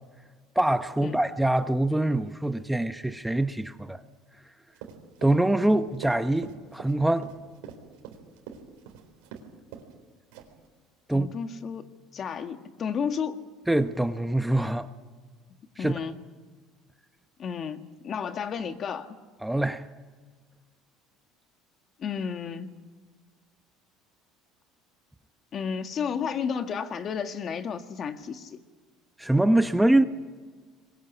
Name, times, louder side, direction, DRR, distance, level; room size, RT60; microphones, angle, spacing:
voice 1, 0.5-4.0 5.2-7.3 11.1-11.3 13.7-14.9 15.8-15.9 19.4-19.9 29.2-30.0, right 1 dB, 5° right, 1.0 m, -24 dB
Run, 4.7-9.5 9.7-9.9 10.3-10.7, right 8 dB, 85° right, 4.0 m, -43 dB
voice 2, 11.1-11.9 12.1-13.4 15.8-16.2 17.4-19.2 22.0-22.8 25.5-28.6, left 6 dB, 45° left, 1.8 m, -32 dB
22.0 x 21.0 x 8.5 m
supercardioid pair, 95°, 0 cm